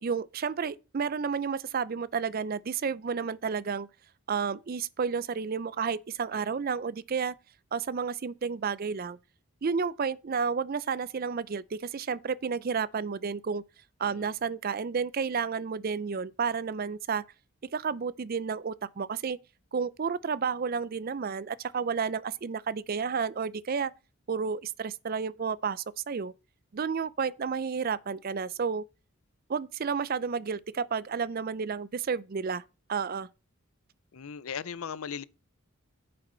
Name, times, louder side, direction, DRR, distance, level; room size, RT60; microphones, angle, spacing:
voice 1, 0.0-3.9 4.3-7.3 7.7-9.2 9.6-13.6 14.0-17.2 17.7-19.4 19.7-23.9 24.3-26.3 26.7-28.8 29.5-32.6 32.9-33.3, right 6 dB, 45° right, 0.4 m, -31 dB
voice 2, 34.1-35.2, left 7 dB, 80° left, 0.6 m, -38 dB
9.7 x 7.7 x 3.9 m
head